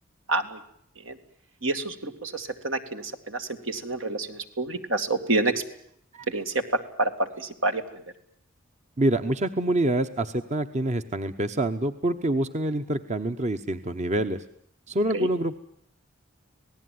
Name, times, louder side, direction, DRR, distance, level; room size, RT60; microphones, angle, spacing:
voice 1, 0.3-0.6 1.0-1.2 1.6-5.6 6.3-8.0 15.1-15.3, right 2 dB, 80° right, 6 dB, 2.7 m, -28 dB
voice 2, 9.0-14.4 14.9-15.6, right 1 dB, 35° right, 9 dB, 1.0 m, -26 dB
27.0 x 18.5 x 9.4 m, 0.71 s
head